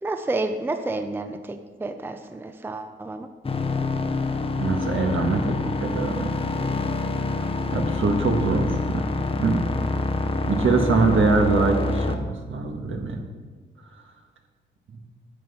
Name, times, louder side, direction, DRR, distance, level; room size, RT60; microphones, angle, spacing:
voice 1, 0.0-3.3, right 2 dB, 10° right, 7 dB, 0.5 m, -30 dB
sound 1, 3.4-12.2, left 3 dB, 25° left, 0.7 m, -26 dB
voice 2, 4.6-6.3 7.3-9.1 9.4-9.7 10.4-13.2 14.9-15.1, right 3 dB, 70° right, 3 dB, 1.5 m, -23 dB
10.5 x 8.9 x 4.2 m, 1.5 s
wide cardioid pair, 125°, 21 cm